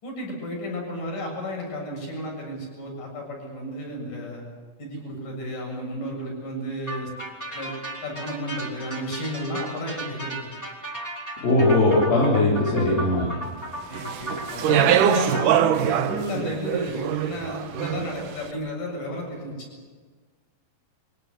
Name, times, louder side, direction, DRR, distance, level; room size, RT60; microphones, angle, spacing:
voice 1, 0.0-4.4 4.8-7.1 7.5-7.7 8.0-10.5 13.2-13.5 13.9-19.5, equal, 65° left, 0 dB, 8.9 m, -32 dB
sound 1, 6.9-15.4, right 1 dB, 5° left, 3.7 m, -35 dB
voice 2, 11.4-13.3, left 2 dB, 80° left, -6 dB, 5.5 m, -19 dB
Speech, 13.9-18.3, right 10 dB, 70° right, 2.4 m, -23 dB
24.5 x 18.5 x 8.3 m, 1.5 s
omnidirectional pair, 4.0 m